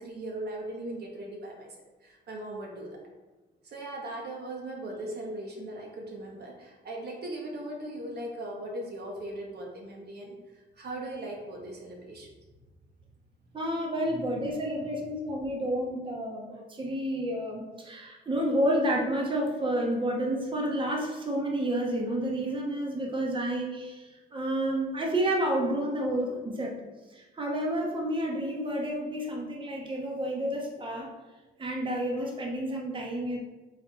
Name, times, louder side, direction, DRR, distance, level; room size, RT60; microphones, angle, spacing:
voice 1, 0.0-3.0 3.6-12.3 14.1-15.0, right 1 dB, 55° right, 0 dB, 0.9 m, -39 dB
voice 2, 13.5-26.7 27.1-31.1 31.6-33.4, right 1 dB, 25° right, -1 dB, 0.9 m, -30 dB
4.0 x 2.5 x 4.4 m, 1.2 s
cardioid pair, 90°, 20 cm